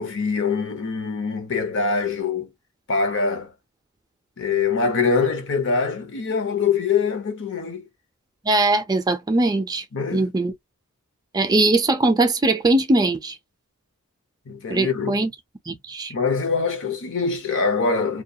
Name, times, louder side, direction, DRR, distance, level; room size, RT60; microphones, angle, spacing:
voice 1, 0.0-2.5 2.9-3.5 4.4-7.9 9.9-10.2 14.5-15.2 16.1-18.2, left 5 dB, 60° left, 0.7 m, -24 dB
voice 2, 8.5-9.8 10.1-10.5 11.3-13.4 14.7-15.3 15.7-16.1, right 2 dB, 20° right, 0.4 m, -20 dB
2.2 x 2.2 x 2.6 m
head